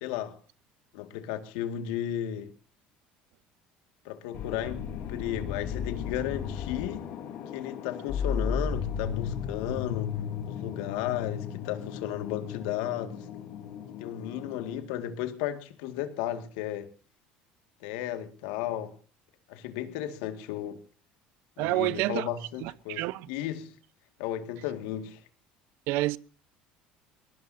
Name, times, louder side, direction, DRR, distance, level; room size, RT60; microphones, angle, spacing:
voice 1, 0.0-0.4 0.9-2.5 4.1-7.1 7.5-10.2 10.5-13.3 14.0-16.9 17.8-18.9 19.5-20.8 21.6-23.7 24.2-25.2, left 11 dB, 80° left, 1.9 m, -34 dB
sound 1, 4.3-14.8, left 7 dB, 65° left, 3.7 m, -35 dB
voice 2, 21.6-22.3 22.6-23.3 25.9-26.2, right 18 dB, 75° right, 0.8 m, -28 dB
22.5 x 19.5 x 2.7 m
supercardioid pair, 90°, 4 cm